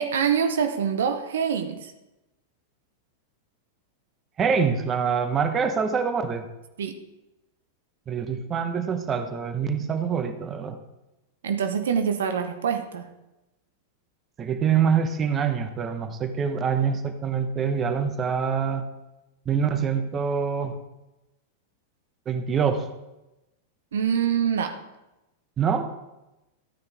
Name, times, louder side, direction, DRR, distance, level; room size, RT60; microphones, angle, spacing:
voice 1, 0.0-1.9 6.8-7.0 11.4-13.1 23.9-24.8, right 7 dB, 65° right, 7 dB, 0.9 m, -25 dB
voice 2, 4.4-6.5 8.1-10.8 14.4-18.8 19.5-20.8 22.3-22.9 25.6-25.9, right 6 dB, 25° right, 8 dB, 1.2 m, -25 dB
14.0 x 9.5 x 3.6 m, 0.98 s
figure-of-eight pair, 95°, 0 cm